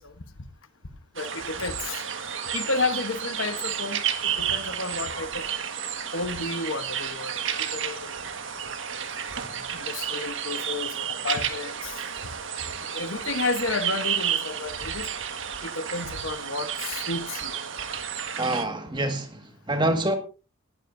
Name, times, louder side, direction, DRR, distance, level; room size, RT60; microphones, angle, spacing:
voice 1, 1.2-2.0 2.5-5.4 6.1-7.3 7.7-8.1 9.7-11.9 12.9-15.1 15.6-17.5, left 3 dB, 70° left, 1.1 m, -31 dB
sound 1, 1.2-18.7, right 8 dB, 60° right, 1.6 m, -31 dB
voice 2, 18.4-20.2, right 1 dB, 20° right, 1.8 m, -26 dB
19.0 x 12.0 x 2.7 m
head